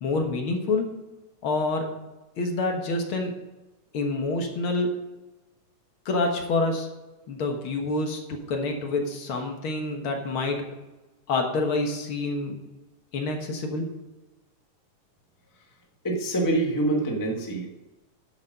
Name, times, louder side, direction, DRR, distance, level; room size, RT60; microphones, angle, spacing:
voice 1, 0.0-0.9 1.4-1.9 2.4-3.3 3.9-4.9 6.1-6.9 7.3-10.6 11.3-12.6 13.1-13.9, left 2 dB, 55° left, 3 dB, 1.6 m, -27 dB
voice 2, 16.0-17.7, right 2 dB, 30° left, 0 dB, 0.3 m, -25 dB
11.0 x 7.2 x 5.3 m, 1.1 s
omnidirectional pair, 3.7 m